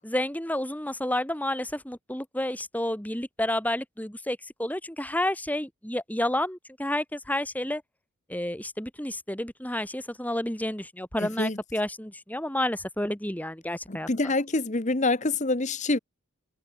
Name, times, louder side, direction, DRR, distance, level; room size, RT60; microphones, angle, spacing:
voice 1, 0.0-7.8 8.3-14.1, left 1 dB, 5° left, 2.9 m, -30 dB
voice 2, 11.2-11.6 13.9-16.0, left 2 dB, 35° left, 1.1 m, -26 dB
head